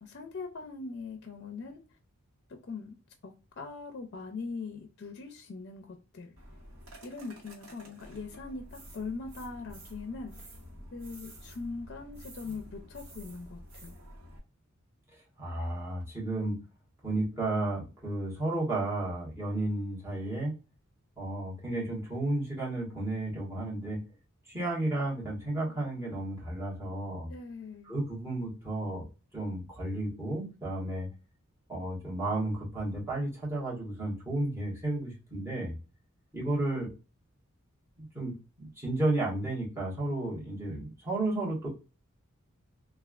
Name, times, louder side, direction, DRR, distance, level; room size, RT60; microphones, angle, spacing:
voice 1, 0.0-1.8 2.7-3.0 3.2-6.4 7.0-10.5 10.9-13.9 27.3-27.9, left 4 dB, 55° left, 4 dB, 0.5 m, -41 dB
sound 1, 6.4-14.4, equal, 75° right, 1.1 m, -49 dB
voice 2, 15.4-16.6 17.0-20.5 21.2-24.0 24.5-27.3 27.9-29.0 29.3-31.1 31.7-35.7 36.3-36.9 38.0-41.7, right 2 dB, 10° right, -6 dB, 1.4 m, -32 dB
3.3 x 2.3 x 2.3 m, 0.31 s
head